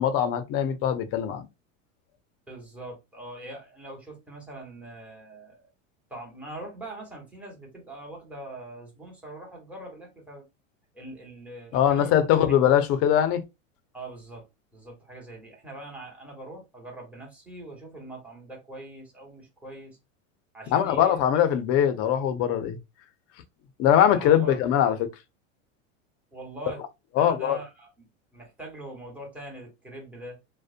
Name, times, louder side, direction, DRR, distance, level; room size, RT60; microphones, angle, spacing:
voice 1, 0.0-1.5 11.7-13.4 20.7-22.8 23.8-25.1 27.2-27.6, left 10 dB, 40° left, 0.5 m, -22 dB
voice 2, 2.5-5.7 6.1-10.4 10.9-12.1 13.9-14.4 14.7-20.0 20.5-21.2 24.1-24.6 26.3-26.8 27.2-30.4, right 2 dB, 5° right, 1.1 m, -42 dB
2.5 x 2.1 x 2.4 m
supercardioid pair, 115°, 39 cm